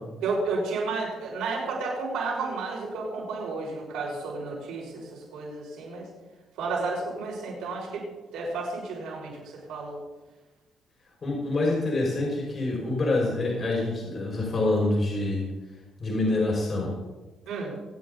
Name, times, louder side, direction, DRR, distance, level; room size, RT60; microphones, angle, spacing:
voice 1, 0.2-6.1 6.6-8.0 8.3-9.4 9.7-10.0 17.5-17.7, right 3 dB, 75° right, -3 dB, 6.1 m, -32 dB
voice 2, 11.2-15.5 16.0-16.9, left 2 dB, 45° left, -3 dB, 5.8 m, -26 dB
26.0 x 8.7 x 4.0 m, 1.2 s
hypercardioid pair, 55°, 0 cm